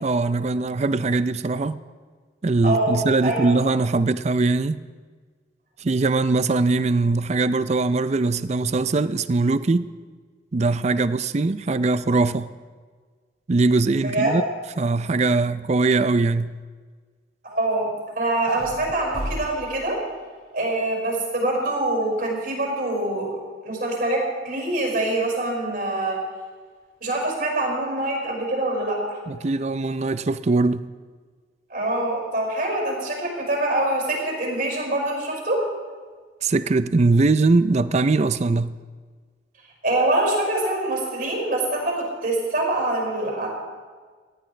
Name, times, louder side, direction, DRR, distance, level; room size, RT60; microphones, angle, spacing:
voice 1, 0.0-1.8 2.4-4.8 5.8-9.9 10.5-12.5 13.5-14.4 14.8-16.6 29.3-30.9 36.4-38.8, right 3 dB, 40° right, 0.5 m, -21 dB
voice 2, 2.6-3.5 14.0-14.3 17.4-17.9 18.2-20.0 20.5-23.3 23.6-26.2 27.0-29.2 31.7-35.6 39.8-43.5, right 2 dB, 55° right, 5.4 m, -24 dB
sound 1, 18.5-20.7, equal, 60° left, 5.1 m, -36 dB
18.5 x 14.5 x 3.3 m
head